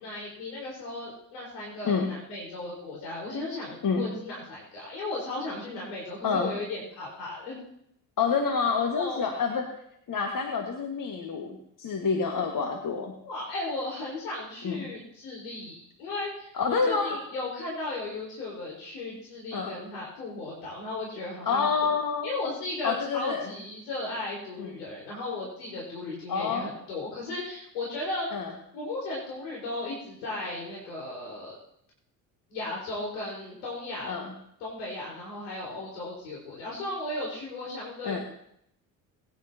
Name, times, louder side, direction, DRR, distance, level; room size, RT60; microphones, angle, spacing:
voice 1, 0.0-7.5 8.9-9.4 13.2-21.7 22.2-28.3 28.7-31.5 32.5-34.2 34.6-38.2, left 2 dB, 75° left, -4 dB, 5.0 m, -36 dB
voice 2, 8.2-9.7 10.1-13.1 14.6-14.9 16.6-17.2 19.5-19.8 21.5-22.3 22.8-23.5 24.6-24.7 26.3-26.7 28.3-28.5 34.1-34.3 38.0-38.2, left 5 dB, 40° left, 3 dB, 1.9 m, -28 dB
22.0 x 10.5 x 2.9 m, 0.74 s
hypercardioid pair, 55°, 49 cm